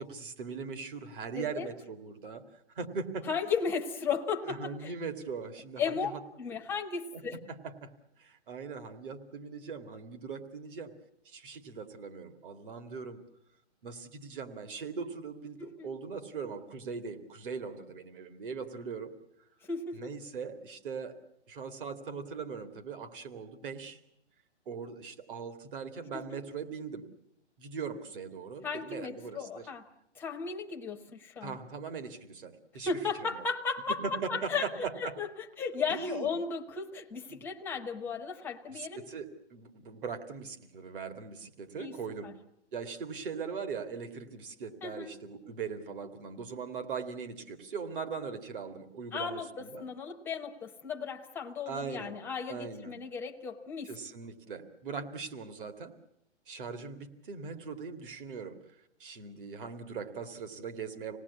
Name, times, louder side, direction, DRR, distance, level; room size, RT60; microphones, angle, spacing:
voice 1, 0.0-3.3 4.4-6.2 7.1-7.2 7.5-7.9 8.2-10.9 11.2-13.2 13.8-19.1 19.9-21.2 21.5-24.0 24.7-27.1 27.6-29.7 31.4-32.9 33.3-33.4 34.0-35.1 35.9-36.3 37.3-37.4 38.7-42.3 42.7-49.9 51.7-52.1 52.5-52.9 53.8-55.9 56.5-58.6 59.0-61.2, right 5 dB, 45° right, 7 dB, 2.5 m, -40 dB
voice 2, 1.4-1.7 3.3-4.9 5.8-6.1 6.4-7.4 15.6-15.9 19.6-20.1 26.1-26.2 28.6-29.8 30.2-31.6 32.9-35.3 35.6-39.0 41.8-42.0 42.2-42.3 44.8-45.1 49.1-49.5 49.8-53.9, left 5 dB, 5° left, 2 dB, 0.8 m, -35 dB
27.0 x 18.5 x 8.4 m, 0.80 s
hypercardioid pair, 160°, 36 cm